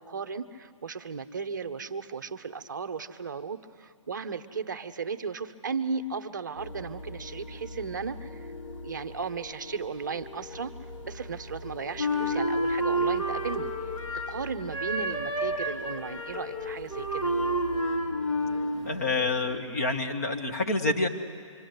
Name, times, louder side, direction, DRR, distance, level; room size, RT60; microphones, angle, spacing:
voice 1, 0.0-10.7 11.0-13.7 14.3-17.3, right 5 dB, 35° right, 9 dB, 0.8 m, -35 dB
sound 1, 6.6-19.6, left 2 dB, 70° left, 4.2 m, -43 dB
Wind instrument woodwind instrument, 12.0-14.4 14.7-18.8, equal, 90° left, 2.9 m, -29 dB
voice 2, 18.9-21.1, left 2 dB, 30° left, 4 dB, 1.3 m, -27 dB
25.5 x 25.5 x 7.9 m, 2.1 s
hypercardioid pair, 175°, 17 cm